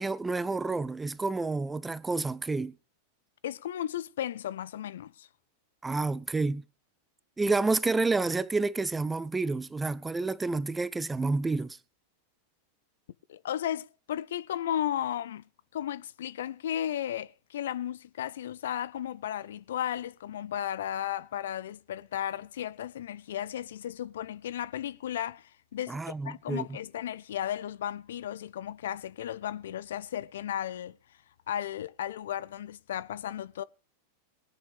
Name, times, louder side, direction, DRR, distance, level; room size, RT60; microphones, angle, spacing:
voice 1, 0.0-2.7 5.8-6.6 7.4-11.8 25.9-26.6, right 3 dB, 10° right, 0.5 m, -29 dB
voice 2, 3.4-5.3 13.3-15.5 15.7-31.0 31.5-33.6, left 11 dB, 60° left, 0.5 m, -34 dB
21.5 x 9.1 x 3.5 m
figure-of-eight pair, 90°, 0 cm